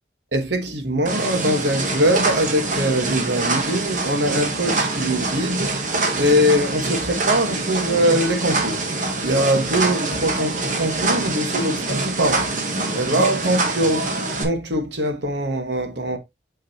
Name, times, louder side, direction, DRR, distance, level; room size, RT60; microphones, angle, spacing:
voice 1, 0.3-5.7 6.1-8.8 9.2-12.5 12.9-14.1 14.4-16.2, equal, 85° right, 1.5 m, -22 dB
sound 1, 1.1-14.4, right 2 dB, 45° right, 1.4 m, -24 dB
6.6 x 5.4 x 2.8 m
head